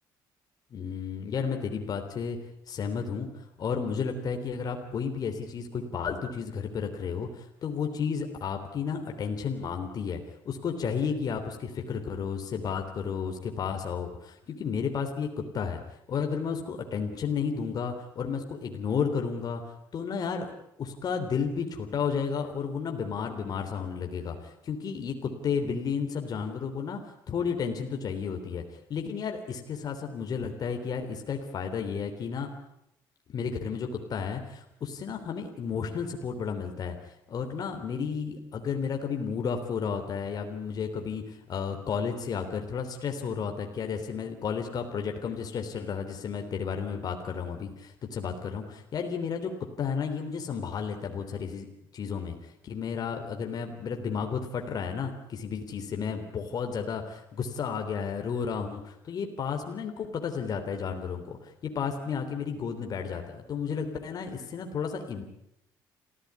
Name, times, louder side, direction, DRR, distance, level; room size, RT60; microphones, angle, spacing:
voice 1, 0.7-2.4 2.7-15.8 16.1-19.6 19.9-20.5 20.8-27.0 27.3-32.5 33.3-49.5 49.8-51.7 51.9-65.2, left 6 dB, 50° left, 4 dB, 3.4 m, -32 dB
27.0 x 16.0 x 9.6 m, 0.79 s
cardioid pair, 100°, 8 cm